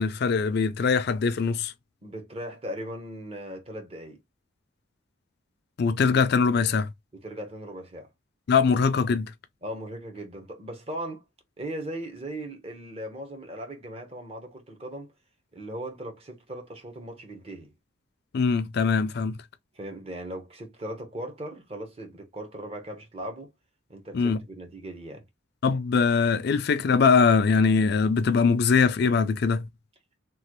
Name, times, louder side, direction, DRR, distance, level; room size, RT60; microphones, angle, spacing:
voice 1, 0.0-1.7 5.8-6.9 8.5-9.3 18.3-19.4 24.1-24.4 25.6-29.7, left 5 dB, 55° left, 0.4 m, -22 dB
voice 2, 2.0-4.2 7.1-8.1 9.6-11.2 11.6-15.1 15.5-17.7 19.7-23.5 23.9-25.2, right 1 dB, 30° right, 0.8 m, -38 dB
3.1 x 2.2 x 2.9 m
head